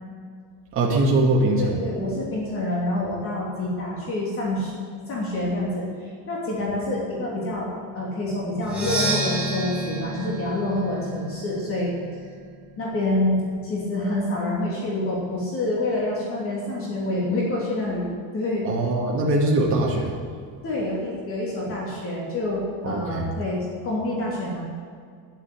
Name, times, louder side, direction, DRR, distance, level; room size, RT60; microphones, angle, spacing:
voice 1, 0.7-1.9 18.6-20.2 22.8-23.3, right 2 dB, 30° right, -3 dB, 2.4 m, -22 dB
voice 2, 1.6-11.9 12.8-18.0 18.3-18.7 20.6-24.6, left 1 dB, 30° left, -4 dB, 3.0 m, -27 dB
Percussion, 8.6-12.4, right 2 dB, 5° right, 2.7 m, -30 dB
10.0 x 8.3 x 9.9 m, 2.2 s
cardioid pair, 175°, 43 cm